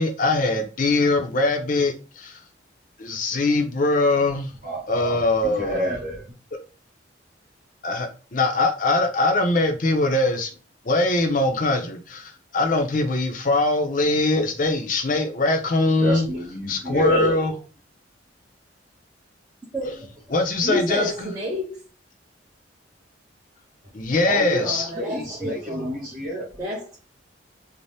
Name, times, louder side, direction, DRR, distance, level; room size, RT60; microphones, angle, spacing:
voice 1, 0.0-2.4 3.0-4.5 4.9-5.9 7.8-10.5 10.8-16.3 16.7-17.5 20.3-21.3 23.9-24.9, left 2 dB, 45° left, 0.5 m, -22 dB
voice 2, 4.6-6.3 16.0-17.3 24.2-26.5, equal, 40° right, 1.0 m, -29 dB
voice 3, 17.0-17.4 19.7-20.1 20.6-21.8 24.6-26.0 26.6-27.0, equal, 20° right, 0.6 m, -29 dB
2.6 x 2.0 x 3.3 m
head